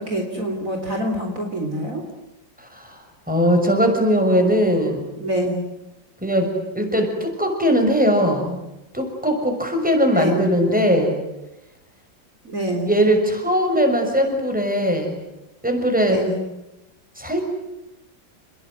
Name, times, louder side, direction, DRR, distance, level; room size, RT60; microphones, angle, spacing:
voice 1, 0.0-2.0 5.2-5.7 10.1-10.5 12.4-12.9 16.0-16.4, equal, 45° right, 2 dB, 4.1 m, -25 dB
voice 2, 2.6-2.9 3.3-5.1 6.2-8.6 8.9-11.2 12.9-15.1 15.6-16.2 17.2-17.4, equal, 5° right, 4 dB, 6.4 m, -20 dB
29.5 x 21.0 x 9.7 m, 0.94 s
omnidirectional pair, 2.1 m